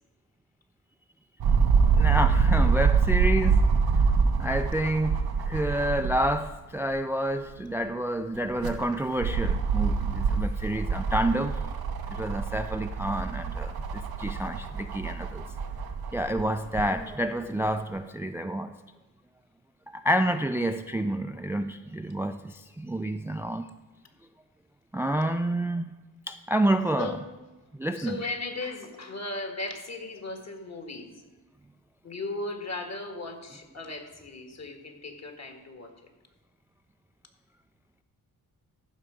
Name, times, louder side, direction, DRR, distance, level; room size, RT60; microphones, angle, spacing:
sound 1, 1.4-6.5 6.9-7.0 8.3-16.9 17.7-17.8, right 5 dB, 90° right, 0.9 m, -25 dB
voice 1, 1.9-3.6 4.4-5.2 5.5-11.6 12.1-15.4 16.1-18.7 19.9-23.7 24.9-25.9 26.3-27.1 27.8-28.3, right 1 dB, 5° right, 8 dB, 0.4 m, -29 dB
voice 2, 27.9-31.2 32.0-35.9, left 2 dB, 45° left, 5 dB, 1.8 m, -37 dB
14.0 x 5.7 x 5.1 m, 1.2 s
cardioid pair, 75°, 35 cm